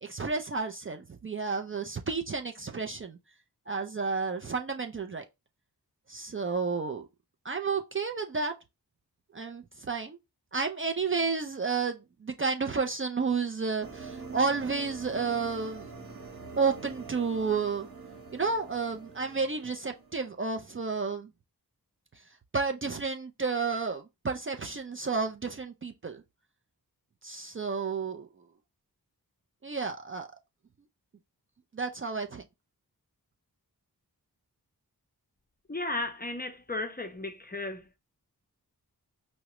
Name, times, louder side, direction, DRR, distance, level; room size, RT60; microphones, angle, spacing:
voice 1, 0.0-3.2 3.7-5.2 6.1-7.1 7.4-8.5 9.3-10.2 10.5-15.9 16.6-17.9 18.3-21.3 22.5-26.2 27.2-28.3 29.6-30.3 31.7-32.4, right 4 dB, 35° right, 0.4 m, -31 dB
sound 1, 13.8-20.4, right 4 dB, 60° right, 1.1 m, -45 dB
voice 2, 35.7-38.0, left 2 dB, 25° left, 0.5 m, -35 dB
4.7 x 2.1 x 2.9 m
wide cardioid pair, 65°, 38 cm